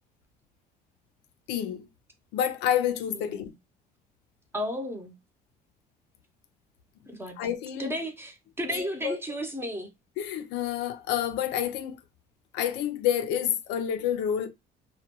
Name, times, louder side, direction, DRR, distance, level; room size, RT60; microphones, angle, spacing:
voice 1, 1.5-1.9 2.3-3.5 7.4-7.9 8.7-9.2 10.2-12.0 12.5-14.5, left 10 dB, 90° left, 0.4 m, -28 dB
voice 2, 3.1-3.5 4.5-5.1 7.1-7.4 7.8-9.9, equal, 15° right, 0.6 m, -33 dB
2.2 x 2.2 x 2.9 m
cardioid pair, 110°, 17 cm